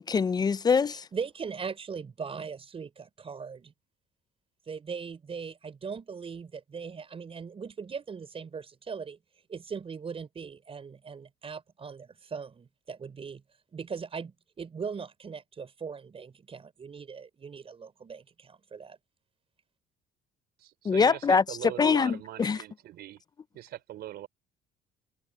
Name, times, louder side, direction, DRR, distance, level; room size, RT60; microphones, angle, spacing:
voice 1, 0.0-1.1 20.8-21.4 21.8-22.6, left 5 dB, 25° left, 0.4 m, -24 dB
voice 2, 1.1-3.7 4.7-9.2 9.5-13.4 13.7-19.0, right 6 dB, 35° right, 5.1 m, -39 dB
voice 3, 20.6-23.2 23.5-24.3, right 13 dB, 70° right, 4.5 m, -41 dB
cardioid pair, 110°, 17 cm